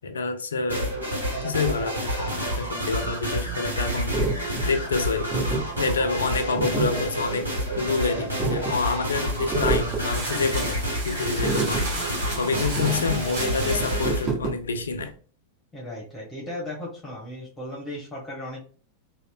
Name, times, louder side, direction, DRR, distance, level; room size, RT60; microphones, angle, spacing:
voice 1, 0.0-0.9 1.4-4.4 4.6-5.3 5.8-7.5 7.8-10.8 11.0-15.1, left 4 dB, 70° left, 0.4 m, -28 dB
sound 1, 0.7-14.3, equal, 80° right, 0.8 m, -29 dB
sound 2, 4.1-15.1, right 4 dB, 30° right, 1.0 m, -30 dB
sound 3, 9.3-14.2, right 2 dB, 55° right, 1.1 m, -35 dB
voice 2, 15.7-18.6, left 1 dB, 15° left, 1.1 m, -36 dB
2.8 x 2.1 x 2.3 m
figure-of-eight pair, 90°, 0 cm